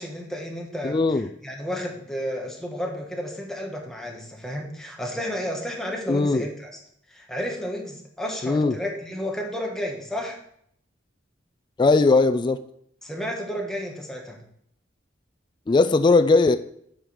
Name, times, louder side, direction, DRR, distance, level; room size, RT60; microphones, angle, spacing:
voice 1, 0.0-6.7 7.1-10.4 13.0-14.4, equal, 5° left, 1.3 m, -32 dB
voice 2, 0.8-1.3 6.1-6.5 8.4-8.8 11.8-12.6 15.7-16.6, left 3 dB, 25° left, 0.3 m, -19 dB
7.9 x 5.0 x 5.6 m
head